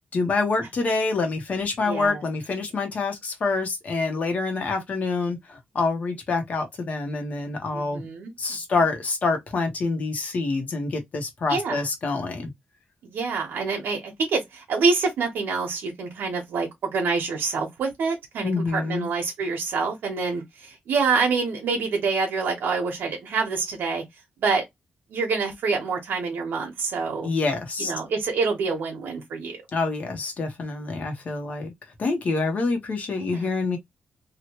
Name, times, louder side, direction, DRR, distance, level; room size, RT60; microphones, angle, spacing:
voice 1, 0.1-8.0 8.4-12.5 18.4-19.1 27.2-27.9 29.7-31.7 32.0-33.8, left 3 dB, 45° left, 0.9 m, -26 dB
voice 2, 1.8-2.2 4.5-4.7 7.7-8.6 11.5-11.8 13.0-24.0 24.4-24.7 25.1-27.3 27.8-29.6 33.2-33.5, right 4 dB, 80° right, 1.0 m, -26 dB
3.0 x 2.3 x 2.9 m
wide cardioid pair, 155°, 3 cm